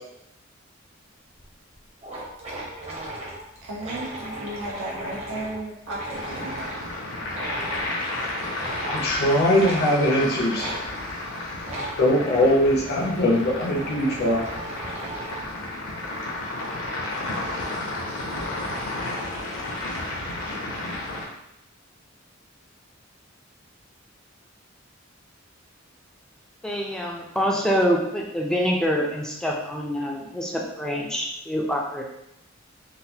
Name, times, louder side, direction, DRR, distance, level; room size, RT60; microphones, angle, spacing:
sound 1, 1.4-1.5 1.7-1.8 2.0-6.8 7.3-7.9 8.5-9.1 9.6-9.8 10.6-10.8 11.6-12.0 12.7-15.5, right 1 dB, 35° right, 0.8 m, -36 dB
voice 1, 3.6-6.7, right 1 dB, 75° right, -4 dB, 0.9 m, -34 dB
sound 2, 6.1-21.2, left 2 dB, 80° left, 0.8 m, -32 dB
voice 2, 8.9-10.7 12.0-14.4, left 1 dB, 50° left, -2 dB, 0.6 m, -21 dB
voice 3, 26.6-32.0, equal, 5° left, -1 dB, 0.4 m, -25 dB
3.9 x 2.2 x 2.7 m, 0.81 s
head